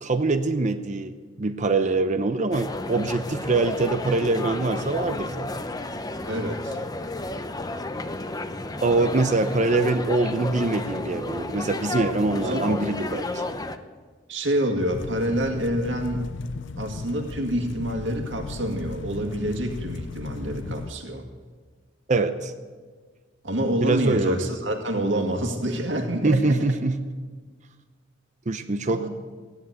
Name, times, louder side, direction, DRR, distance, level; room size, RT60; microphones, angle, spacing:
voice 1, 0.0-5.5 8.8-13.4 22.1-22.5 23.8-24.5 26.2-27.0 28.5-29.1, right 3 dB, 40° right, 9 dB, 0.7 m, -24 dB
sound 1, 2.5-13.8, left 2 dB, 20° left, 0.7 m, -32 dB
voice 2, 6.3-6.8 12.4-12.8 14.3-16.3 16.8-21.3 23.4-26.6 28.9-29.1, right 1 dB, 80° right, 3 dB, 2.1 m, -27 dB
sound 2, 14.9-20.9, left 4 dB, 70° left, 0.5 m, -36 dB
15.5 x 10.5 x 8.1 m, 1.5 s
head